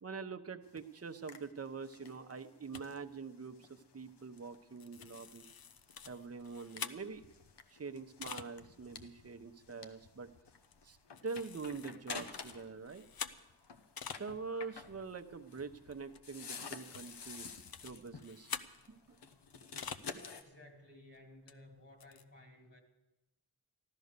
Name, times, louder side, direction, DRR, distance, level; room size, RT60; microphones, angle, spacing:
voice 1, 0.0-5.4 6.1-7.2 7.7-10.3 10.8-11.0 11.2-13.0 14.2-18.5 18.9-19.0, right 4 dB, 35° right, 8 dB, 0.8 m, -45 dB
sound 1, 0.6-12.8 13.0-20.4, left 5 dB, 85° left, 1.0 m, -51 dB
sound 2, 2.7-2.9 4.4-4.5 4.8-7.4 8.0-8.5 9.1-9.2 9.5-9.7 10.6-10.9 11.2-14.2 14.6-20.2 20.5-20.6 21.5-21.6 21.8-22.2, left 7 dB, 60° left, 0.7 m, -48 dB
voice 2, 20.1-22.8, left 1 dB, 35° left, 4 dB, 2.5 m, -57 dB
14.5 x 12.5 x 6.7 m, 1.0 s
wide cardioid pair, 60°, 40 cm